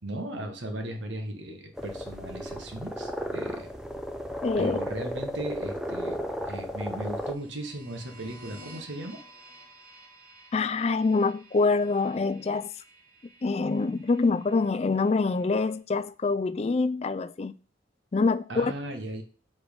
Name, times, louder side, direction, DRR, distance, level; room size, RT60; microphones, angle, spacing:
voice 1, 0.0-3.7 4.6-9.2 18.5-19.2, right 1 dB, 75° right, 1.4 m, -37 dB
sound 1, 1.8-7.3, equal, 5° right, 0.6 m, -34 dB
voice 2, 4.4-4.8 10.5-12.7 13.4-17.5 18.1-18.7, left 3 dB, 35° left, 0.4 m, -25 dB
sound 2, 7.0-15.8, equal, 50° right, 2.8 m, -52 dB
6.3 x 5.2 x 5.2 m
head